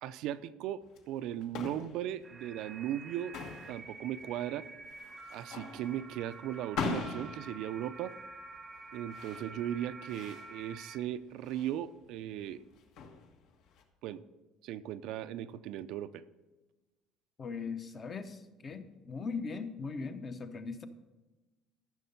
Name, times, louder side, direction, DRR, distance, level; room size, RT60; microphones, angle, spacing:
voice 1, 0.0-3.3 3.7-4.7 5.3-8.1 8.9-12.6 14.0-14.2 14.6-16.2, right 11 dB, 60° right, 12 dB, 0.5 m, -37 dB
sound 1, 0.8-13.8, left 5 dB, 65° left, 1.5 m, -43 dB
sound 2, 2.2-11.0, right 3 dB, 15° right, 0.7 m, -49 dB
voice 2, 17.4-20.9, left 4 dB, 25° left, 9 dB, 0.7 m, -39 dB
13.5 x 6.5 x 5.4 m, 1.1 s
cardioid pair, 170°, 0 cm